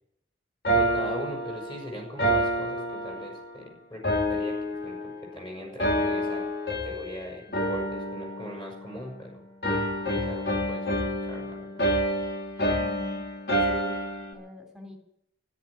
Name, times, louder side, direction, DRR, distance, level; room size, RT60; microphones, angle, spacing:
sound 1, 0.6-3.6 4.0-5.4 5.8-7.2 7.5-9.2 9.6-14.3, equal, 60° left, 3.1 m, -28 dB
voice 1, 0.7-6.4 6.7-9.4 10.1-11.9, equal, 25° left, 0 dB, 6.4 m, -40 dB
voice 2, 12.7-14.0 14.3-15.0, equal, 5° right, 3 dB, 2.9 m, -44 dB
13.5 x 11.5 x 8.9 m, 0.75 s
head